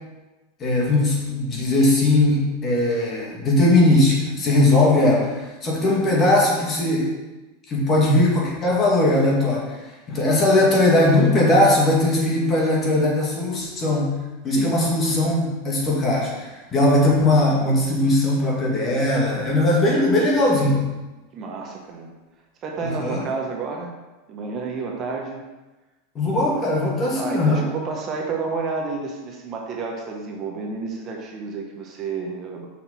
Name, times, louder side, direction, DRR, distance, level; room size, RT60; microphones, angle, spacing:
voice 1, 0.6-7.1 7.7-9.8 10.1-14.1 14.4-20.8 22.8-23.3 26.1-27.7, left 1 dB, 30° left, -3 dB, 2.2 m, -19 dB
voice 2, 21.3-22.1 22.6-23.9 24.3-25.4 27.2-32.7, right 4 dB, 35° right, 1 dB, 1.1 m, -30 dB
6.0 x 5.8 x 4.2 m, 1.1 s
supercardioid pair, 125°, 0 cm